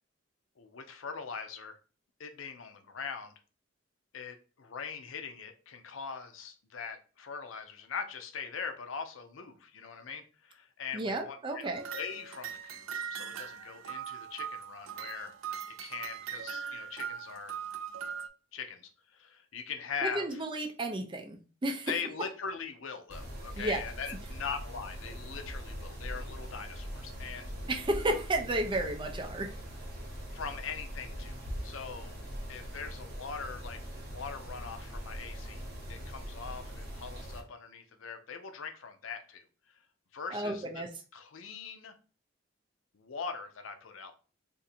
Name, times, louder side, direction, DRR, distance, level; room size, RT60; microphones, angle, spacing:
voice 1, 0.6-1.8 2.2-3.3 4.1-15.3 15.8-17.6 18.5-20.4 21.9-27.5 30.3-31.3 31.6-32.1 32.5-39.4 40.1-40.8 41.1-42.0 42.9-44.1, left 6 dB, 80° left, 7 dB, 0.6 m, -41 dB
voice 2, 10.9-11.9 20.0-21.9 23.6-23.8 27.7-29.5 40.3-40.9, right 1 dB, 25° right, 5 dB, 0.5 m, -32 dB
sound 1, 11.7-18.3, right 8 dB, 85° right, 0.4 m, -40 dB
Mechanisms, 23.1-37.4, equal, 50° right, 1.2 m, -42 dB
2.6 x 2.6 x 4.1 m, 0.37 s
head